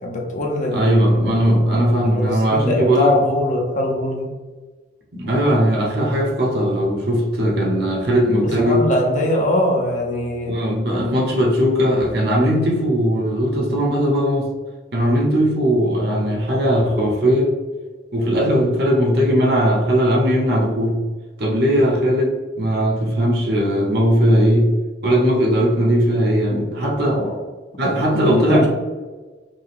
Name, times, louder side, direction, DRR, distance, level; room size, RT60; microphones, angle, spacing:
voice 1, 0.0-0.9 1.3-1.4 2.0-4.3 8.6-10.5 27.1-27.3 27.8-28.7, left 1 dB, 40° left, -1 dB, 0.8 m, -22 dB
voice 2, 0.7-3.1 5.1-8.9 10.5-14.5 14.9-17.5 18.1-21.0 21.4-24.7 25.0-27.2 27.8-28.7, equal, 55° right, -2 dB, 0.9 m, -18 dB
5.3 x 2.2 x 3.5 m, 1.3 s
head